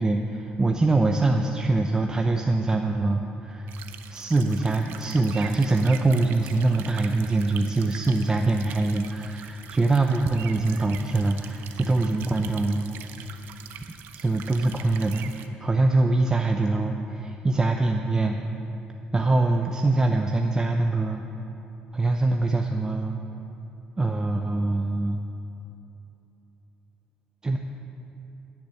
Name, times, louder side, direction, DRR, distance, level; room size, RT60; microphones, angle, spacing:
voice 1, 0.0-3.7 4.1-12.9 14.1-18.4 19.1-21.2 21.9-23.2 24.0-25.2 27.4-27.6, right 2 dB, 20° right, 3 dB, 0.7 m, -23 dB
sound 1, 3.7-15.5, right 9 dB, 80° right, 0.7 m, -44 dB
10.5 x 8.7 x 8.3 m, 2.9 s
cardioid pair, 90°, 3 cm